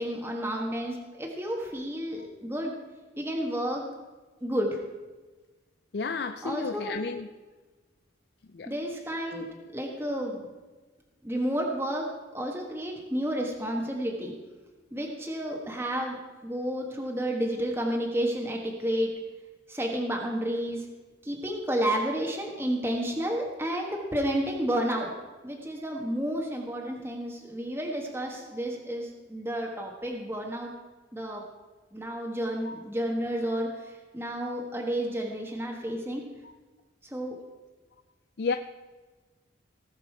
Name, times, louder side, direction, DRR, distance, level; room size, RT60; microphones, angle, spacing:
voice 1, 0.0-2.7 3.2-3.8 4.4-4.8 6.4-7.0 8.6-9.4 9.7-10.5 11.2-14.3 14.9-16.2 16.4-19.2 19.7-20.9 21.2-25.1 25.4-30.7 31.1-31.4 31.9-36.2 37.1-37.3, equal, 10° right, 0 dB, 1.3 m, -31 dB
voice 2, 5.9-7.3 8.6-8.7 32.7-32.8 38.4-38.6, left 4 dB, 55° left, 8 dB, 0.4 m, -31 dB
18.5 x 6.7 x 4.7 m, 1.3 s
head